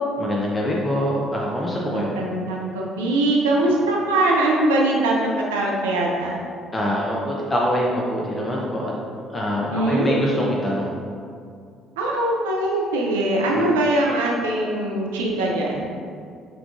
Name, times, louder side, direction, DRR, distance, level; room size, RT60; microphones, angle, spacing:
voice 1, 0.2-2.2 6.7-10.9 13.5-13.7, equal, 20° left, -4 dB, 0.6 m, -24 dB
voice 2, 1.9-6.4 9.7-10.2 12.0-15.9, right 1 dB, 70° right, -2 dB, 0.5 m, -22 dB
5.9 x 3.5 x 2.5 m, 2.3 s
figure-of-eight pair, 50°, 0 cm